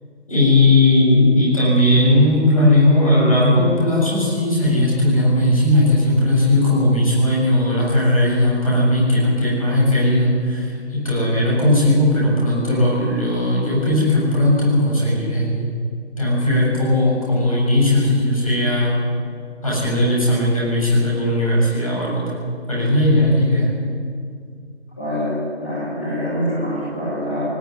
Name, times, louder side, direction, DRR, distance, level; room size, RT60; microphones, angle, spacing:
voice 1, 0.3-15.7 16.2-18.9 19.6-22.2 22.7-23.7, left 1 dB, 30° left, -5 dB, 7.3 m, -17 dB
voice 2, 25.0-25.3 25.6-27.4, equal, 10° left, -16 dB, 3.7 m, -25 dB
19.5 x 13.5 x 9.8 m, 2.1 s
figure-of-eight pair, 175°, 35 cm